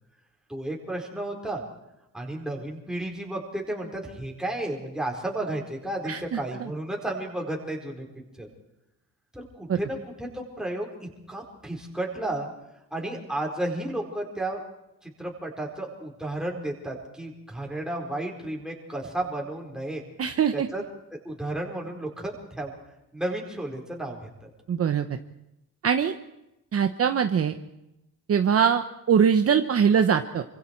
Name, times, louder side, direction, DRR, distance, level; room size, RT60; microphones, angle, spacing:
voice 1, 0.5-1.6 2.1-8.1 8.4-8.5 9.3-10.9 11.3-12.5 12.9-14.6 15.0-20.0 20.5-20.8 21.2-22.7 23.1-24.2, right 1 dB, ahead, -1 dB, 4.5 m, -32 dB
voice 2, 6.0-6.4 9.7-9.8 20.2-20.7 24.7-25.1 25.8-26.2 26.7-27.6 28.3-30.4, right 7 dB, 40° right, 7 dB, 1.0 m, -22 dB
27.5 x 25.0 x 4.6 m, 0.90 s
cardioid pair, 155°, 35 cm